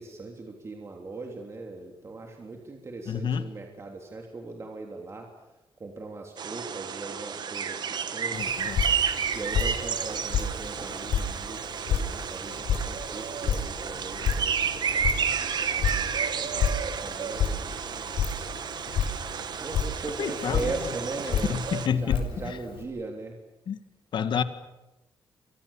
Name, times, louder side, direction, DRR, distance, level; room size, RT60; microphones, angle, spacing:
voice 1, 0.0-5.3 5.8-7.8 8.1-8.4 9.3-11.6 11.9-17.7 19.6-21.6 21.9-23.4, right 3 dB, 30° right, 2 dB, 3.2 m, -39 dB
voice 2, 3.1-3.5 8.3-8.8 20.2-20.7 21.5-22.6 23.7-23.8 24.1-24.4, left 7 dB, 60° left, 10 dB, 1.9 m, -29 dB
sound 1, 6.4-21.9, right 7 dB, 55° right, 1.9 m, -31 dB
Drip, 8.3-22.8, left 6 dB, 90° left, 6.3 m, -31 dB
30.0 x 25.0 x 7.3 m, 1.0 s
cardioid pair, 125°, 9 cm